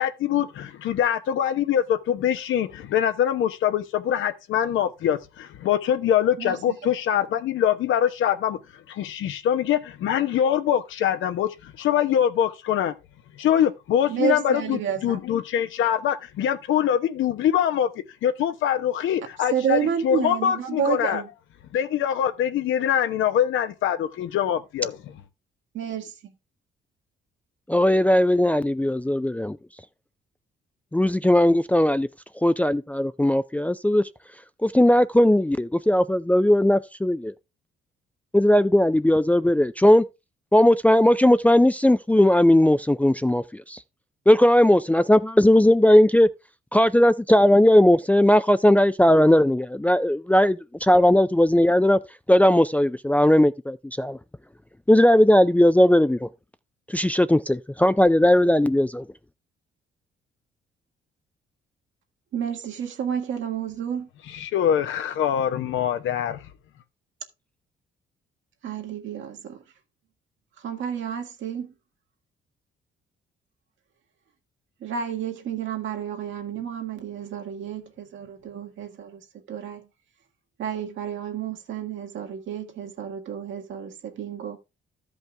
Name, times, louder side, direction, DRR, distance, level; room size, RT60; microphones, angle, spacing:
voice 1, 0.0-8.6 8.9-12.9 13.4-17.9 18.2-21.2 21.7-25.1 64.3-66.5, left 9 dB, 80° left, 1.0 m, -24 dB
voice 2, 6.4-6.7 14.1-15.2 19.5-21.3 25.8-26.0 62.3-64.1 68.6-69.6 70.6-71.7 74.8-79.9 80.6-84.6, right 8 dB, 70° right, 1.9 m, -30 dB
voice 3, 27.7-29.6 30.9-32.1 32.4-34.0 34.6-37.3 38.3-40.0 40.5-43.8 44.3-46.3 46.7-52.0 52.3-54.2 54.9-56.3 56.9-59.0, left 1 dB, 5° left, 0.4 m, -18 dB
13.0 x 5.4 x 3.4 m
cardioid pair, 90°, 20 cm